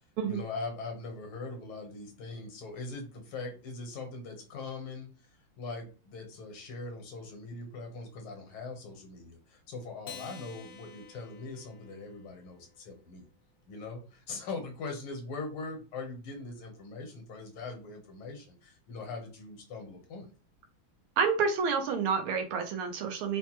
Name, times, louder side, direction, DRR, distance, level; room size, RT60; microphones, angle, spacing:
voice 1, 0.2-5.1 5.6-13.3 13.7-20.3, left 3 dB, 80° left, 3 dB, 1.9 m, -41 dB
Acoustic guitar, 10.0-12.7, left 6 dB, 65° left, 1.0 m, -50 dB
voice 2, 21.2-23.4, right 5 dB, 85° right, 4 dB, 1.6 m, -29 dB
4.4 x 2.2 x 2.9 m, 0.35 s
omnidirectional pair, 2.3 m